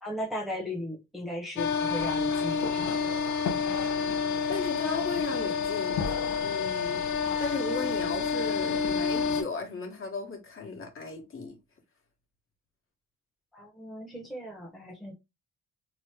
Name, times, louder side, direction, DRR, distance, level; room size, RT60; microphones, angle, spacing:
voice 1, 0.0-3.0 13.5-15.1, equal, ahead, 0.9 m, -37 dB
sound 1, 1.6-9.4, left 6 dB, 75° left, 0.7 m, -29 dB
voice 2, 4.5-6.1 6.4-11.6, left 3 dB, 45° left, 1.2 m, -36 dB
3.0 x 2.0 x 3.3 m
cardioid pair, 90°, 30 cm